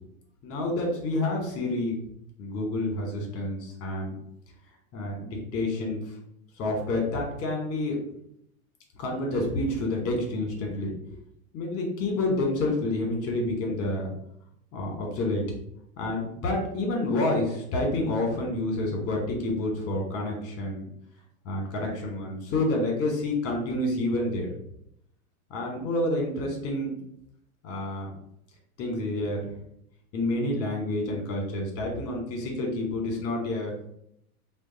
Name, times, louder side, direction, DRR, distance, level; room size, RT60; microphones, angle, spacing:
voice 1, 0.4-2.0 2.4-4.1 4.9-6.0 6.6-8.0 9.0-10.9 11.5-14.1 14.7-15.4 16.0-20.8 21.4-24.5 25.5-27.0 27.6-28.1 28.8-29.5 30.1-33.7, left 2 dB, 35° left, 1 dB, 1.0 m, -28 dB
2.5 x 2.2 x 3.8 m, 0.74 s
supercardioid pair, 135°, 44 cm